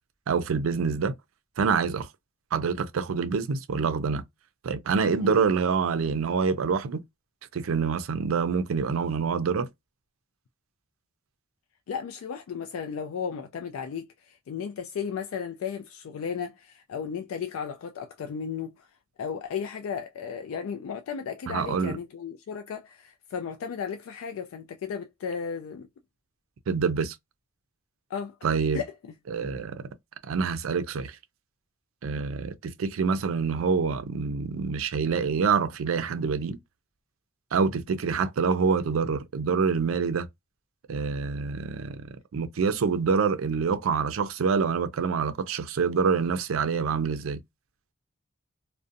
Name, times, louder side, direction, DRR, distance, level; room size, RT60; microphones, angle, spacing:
voice 1, 0.3-1.1 1.6-2.1 2.5-4.2 4.6-7.0 7.5-9.7 21.5-22.0 26.7-27.2 28.4-28.8 29.3-29.9 30.3-31.2 32.0-36.6 37.5-40.3 40.9-42.0 42.3-47.4, right 5 dB, 80° right, 0.4 m, -26 dB
voice 2, 11.9-18.9 19.2-25.9 28.1-28.4 28.7-29.1, left 7 dB, 85° left, 0.3 m, -35 dB
2.5 x 2.1 x 2.5 m
head